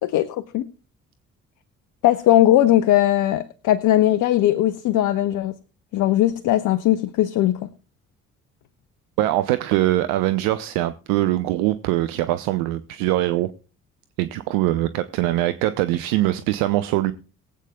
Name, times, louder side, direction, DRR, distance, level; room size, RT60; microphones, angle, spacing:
voice 1, 0.0-0.6 2.0-5.5 5.9-7.6, left 13 dB, 55° left, 0.8 m, -19 dB
voice 2, 9.2-13.5 14.2-17.1, right 15 dB, 65° right, 0.7 m, -22 dB
22.5 x 8.2 x 2.3 m
figure-of-eight pair, 45°, 37 cm